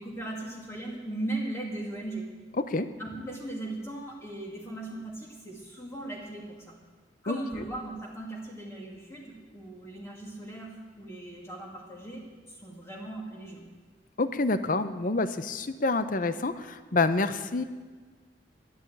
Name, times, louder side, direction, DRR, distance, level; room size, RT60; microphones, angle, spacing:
voice 1, 0.0-2.3 3.0-6.7 7.2-13.6, right 1 dB, 15° left, -3 dB, 2.4 m, -38 dB
voice 2, 14.2-17.6, left 3 dB, 50° left, 12 dB, 0.8 m, -27 dB
12.5 x 11.0 x 9.2 m, 1.5 s
head